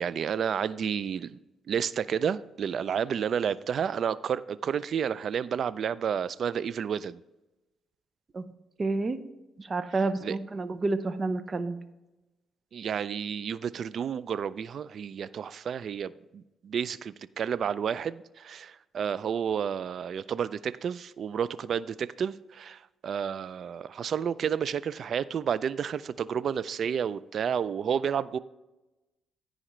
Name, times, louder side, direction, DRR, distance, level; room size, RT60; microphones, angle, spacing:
voice 1, 0.0-1.4 1.7-7.2 10.2-10.4 12.7-28.4, right 7 dB, 60° right, 0.3 m, -31 dB
voice 2, 8.8-9.2 9.6-11.8, right 3 dB, 35° right, 0.7 m, -29 dB
14.0 x 4.9 x 3.1 m
cardioid pair, 90°, 0 cm